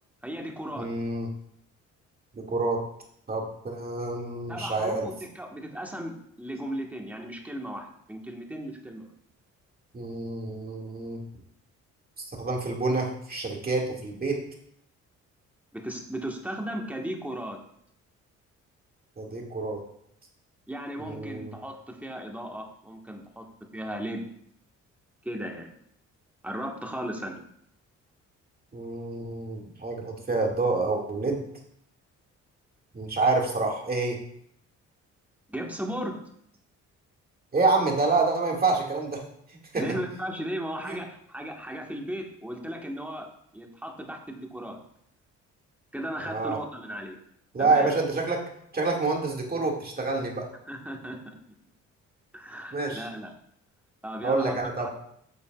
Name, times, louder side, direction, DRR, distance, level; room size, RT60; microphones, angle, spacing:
voice 1, 0.2-0.9 4.5-9.1 15.7-17.6 20.7-23.4 23.7-24.3 25.2-25.7 26.4-27.4 35.5-36.2 39.7-43.3 43.5-44.8 45.9-47.2 47.6-47.9 50.7-51.3 52.3-53.3 54.0-54.9, equal, 5° right, 1 dB, 1.4 m, -36 dB
voice 2, 0.8-1.3 2.3-2.8 3.3-5.1 9.9-11.2 12.2-14.4 19.2-19.8 21.0-21.5 28.7-31.4 32.9-34.2 37.5-39.2 39.7-39.8 40.8-41.0 46.2-46.6 47.5-48.4 48.7-50.5 52.7-53.1 54.2-54.9, right 3 dB, 30° right, 0 dB, 2.1 m, -27 dB
10.0 x 6.7 x 2.4 m, 0.70 s
cardioid pair, 90°, 30 cm